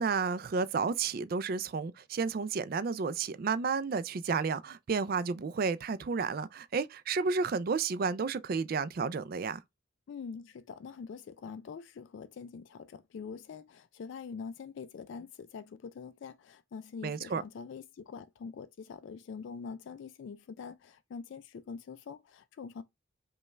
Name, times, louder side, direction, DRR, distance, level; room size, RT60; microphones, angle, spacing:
voice 1, 0.0-9.6 17.0-17.4, right 5 dB, 45° right, 0.3 m, -31 dB
voice 2, 10.1-22.8, left 5 dB, 60° left, 0.3 m, -44 dB
5.2 x 2.3 x 3.2 m
head